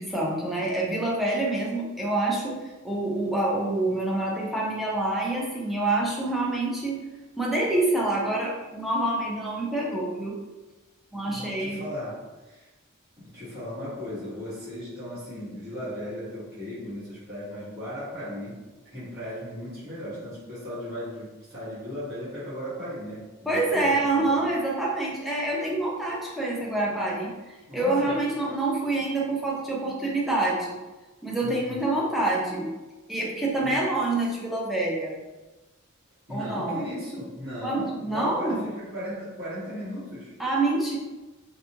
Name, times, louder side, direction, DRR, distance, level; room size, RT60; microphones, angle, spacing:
voice 1, 0.0-7.0 7.4-10.3 11.1-11.8 23.5-30.8 31.2-32.7 33.1-35.2 36.3-36.8 37.6-38.6 40.4-41.0, right 2 dB, ahead, -4 dB, 0.5 m, -27 dB
voice 2, 11.2-12.7 13.2-18.6 18.8-24.5 27.7-28.2 31.4-31.8 33.6-33.9 36.3-40.3, equal, 50° right, -13 dB, 1.4 m, -36 dB
2.6 x 2.3 x 2.7 m, 1.2 s
head